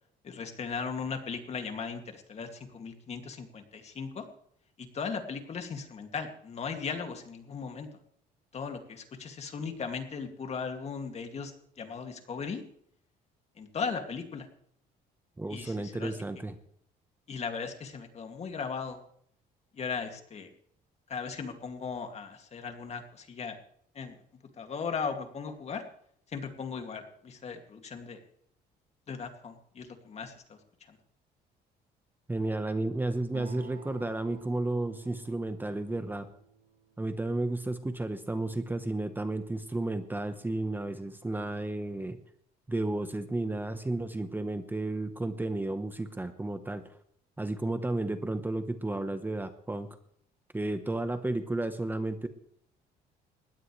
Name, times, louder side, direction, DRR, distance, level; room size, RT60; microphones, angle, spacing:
voice 1, 0.2-4.3 4.8-7.9 8.5-12.6 13.6-14.5 15.5-16.1 17.3-19.0 19.7-20.5 21.1-23.6 23.9-24.2 24.6-25.8 26.3-28.2 29.1-30.6 30.9-31.0, left 5 dB, 40° left, 5 dB, 2.4 m, -37 dB
voice 2, 15.4-16.5 32.3-36.3 37.0-42.2 42.7-46.9 47.4-49.9 50.5-52.3, right 2 dB, 10° right, 9 dB, 1.0 m, -32 dB
Acoustic guitar, 33.3-37.1, right 8 dB, 85° right, 3.8 m, -50 dB
20.0 x 16.0 x 3.3 m, 0.66 s
cardioid pair, 110°, 17 cm